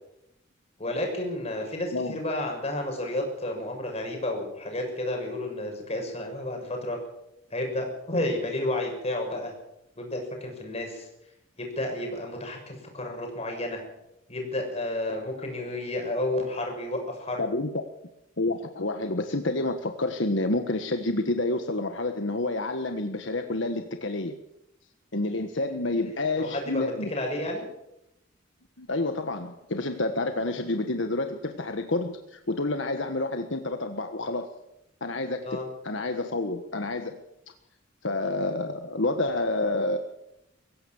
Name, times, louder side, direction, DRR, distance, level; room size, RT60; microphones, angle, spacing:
voice 1, 0.8-7.0 7.5-9.5 10.0-11.1 11.6-13.8 14.3-17.4 26.0-27.6 35.4-35.7, left 1 dB, 35° left, 2 dB, 6.4 m, -31 dB
voice 2, 17.4-17.8 18.4-24.4 25.1-27.1 28.8-34.5 35.0-37.2 38.0-40.0, left 2 dB, 70° left, 6 dB, 1.5 m, -29 dB
23.5 x 15.5 x 7.2 m, 0.85 s
head